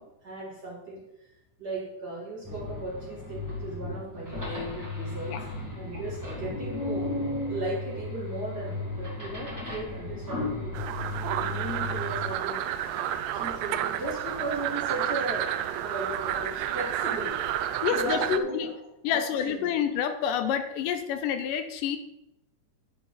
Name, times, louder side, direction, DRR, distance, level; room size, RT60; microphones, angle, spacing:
voice 1, 0.0-1.3 1.6-5.4 5.7-7.1 7.5-12.6 13.3-17.6 17.9-18.8 19.1-19.7, right 2 dB, 35° right, -5 dB, 2.1 m, -36 dB
sound 1, 2.4-12.3, left 2 dB, 10° right, 1.3 m, -35 dB
sound 2, 10.7-18.4, right 11 dB, 80° right, 2.2 m, -31 dB
sound 3, 12.6-17.8, right 4 dB, 60° right, 2.8 m, -46 dB
voice 2, 17.8-18.7 19.0-22.0, left 8 dB, 80° left, 9 dB, 2.2 m, -28 dB
9.6 x 7.4 x 4.1 m, 0.89 s
omnidirectional pair, 4.0 m